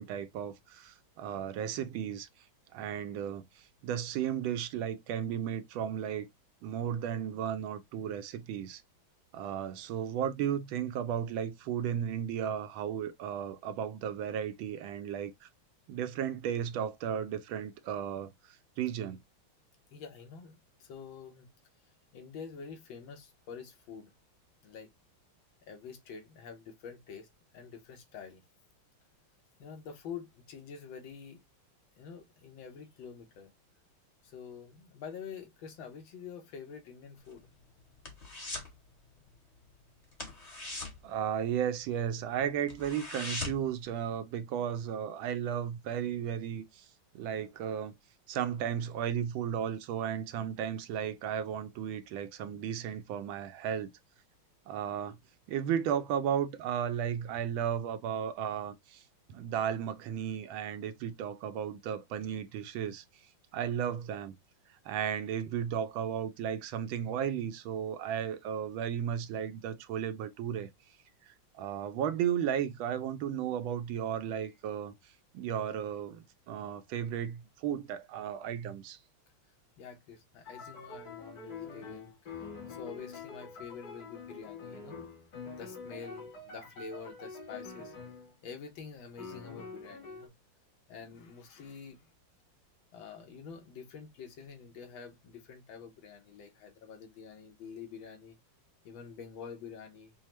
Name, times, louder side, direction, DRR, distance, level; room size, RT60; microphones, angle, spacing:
voice 1, 0.0-2.3 2.7-6.3 6.6-8.8 9.3-15.5 15.9-18.3 18.8-19.2 41.0-46.8 47.1-47.9 48.3-53.9 54.7-55.2 55.5-59.0 59.3-63.0 63.5-64.4 64.9-70.7 71.2-74.9 75.3-79.0, right 9 dB, 80° right, 1.3 m, -34 dB
voice 2, 19.9-21.5 22.1-24.1 24.6-24.9 25.6-27.3 27.5-28.4 29.6-31.4 32.0-33.5 34.2-37.5 79.8-85.0 85.6-87.9 88.4-90.3 90.9-92.0 92.9-98.4 98.8-100.1, left 6 dB, 75° left, 1.7 m, -47 dB
sound 1, 37.2-38.8 39.0-39.3 39.6-39.8 40.1-42.0 42.3-42.4 42.7-43.8 44.1-44.2, left 2 dB, 30° left, 0.8 m, -40 dB
sound 2, 80.4-88.4 89.2-90.3, left 4 dB, 50° left, 1.8 m, -45 dB
5.4 x 2.1 x 2.9 m
omnidirectional pair, 2.3 m